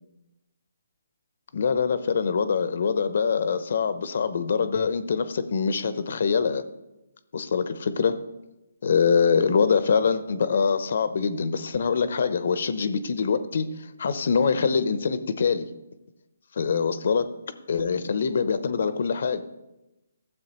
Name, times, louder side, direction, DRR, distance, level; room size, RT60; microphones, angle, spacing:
voice 1, 1.5-6.6 7.3-8.2 8.8-13.7 14.0-15.7 16.6-17.3 17.7-19.4, left 5 dB, 60° left, 12 dB, 0.7 m, -24 dB
13.0 x 7.6 x 3.0 m, 0.98 s
hypercardioid pair, 155°, 0 cm